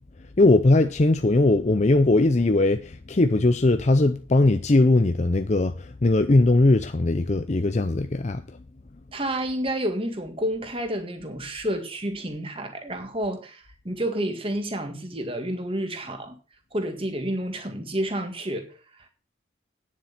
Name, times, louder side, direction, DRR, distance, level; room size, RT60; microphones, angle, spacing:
voice 1, 0.4-8.4, left 2 dB, 35° left, 0.5 m, -20 dB
voice 2, 9.1-16.4 16.7-19.1, right 1 dB, 30° right, 1.9 m, -30 dB
9.8 x 7.4 x 5.9 m
head